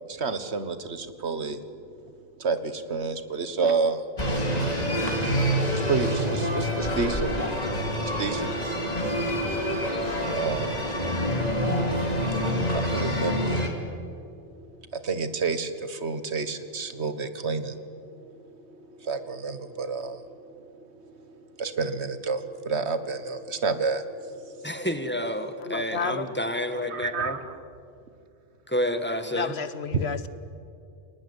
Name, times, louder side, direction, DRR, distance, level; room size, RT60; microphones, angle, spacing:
voice 1, 0.1-1.6 2.4-4.1 5.7-7.3 8.0-8.5 10.3-10.9 12.7-13.7 14.6-20.6 20.9-24.9 26.9-27.6, right 4 dB, 85° right, 11 dB, 1.7 m, -30 dB
sound 1, 4.2-13.7, equal, 40° left, 3.3 m, -27 dB
voice 2, 24.6-27.4 28.7-29.6, left 1 dB, 10° left, 8 dB, 1.8 m, -29 dB
voice 3, 25.6-26.3 29.3-30.3, left 5 dB, 75° left, 13 dB, 1.5 m, -31 dB
29.5 x 19.5 x 9.9 m, 2.5 s
omnidirectional pair, 1.1 m